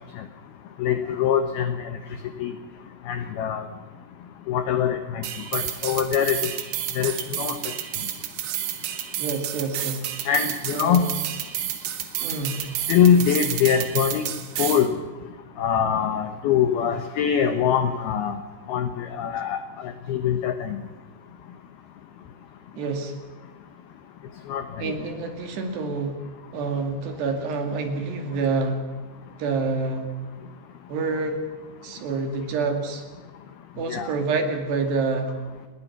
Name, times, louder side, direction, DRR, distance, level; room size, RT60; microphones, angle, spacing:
voice 1, 0.8-1.8 2.4-2.5 3.1-3.6 4.5-5.2 5.5-6.5 7.0-7.6 10.3-11.0 12.9-14.3 14.6-14.9 15.6-18.4 18.7-19.6 20.1-20.8 24.5-24.9 33.9-34.1, left 8 dB, 85° left, 8 dB, 2.1 m, -23 dB
sound 1, 5.2-14.9, right 12 dB, 85° right, 4.4 m, -31 dB
voice 2, 9.2-10.1 10.7-11.1 12.2-12.7 22.8-23.2 24.8-26.2 26.5-28.8 29.4-30.1 30.9-31.4 31.8-33.0 33.8-35.3, right 4 dB, 60° right, 5 dB, 3.9 m, -27 dB
29.0 x 20.5 x 6.0 m, 1.3 s
omnidirectional pair, 6.0 m